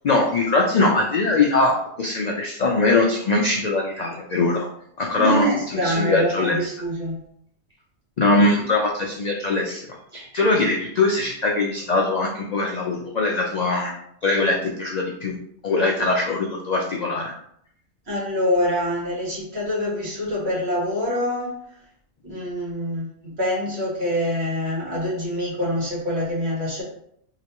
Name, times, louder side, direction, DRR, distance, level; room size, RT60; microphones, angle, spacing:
voice 1, 0.0-4.7 5.0-6.7 8.2-9.9 10.1-13.9 14.2-15.4 15.6-17.3, left 2 dB, 60° left, 0 dB, 0.4 m, -21 dB
voice 2, 5.2-7.2 18.1-21.6 22.2-26.8, equal, 65° right, -5 dB, 1.7 m, -25 dB
3.2 x 2.9 x 2.9 m, 0.71 s
omnidirectional pair, 1.2 m